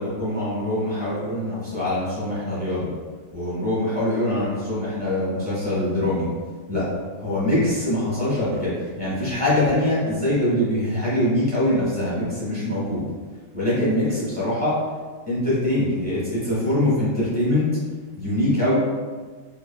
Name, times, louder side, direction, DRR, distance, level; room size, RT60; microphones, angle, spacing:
voice 1, 0.0-2.9 3.3-6.3 6.7-6.8 7.2-13.0 13.5-14.7 15.3-17.6 18.2-18.7, left 1 dB, 5° left, -11 dB, 1.0 m, -23 dB
3.0 x 2.7 x 2.2 m, 1.4 s
omnidirectional pair, 1.9 m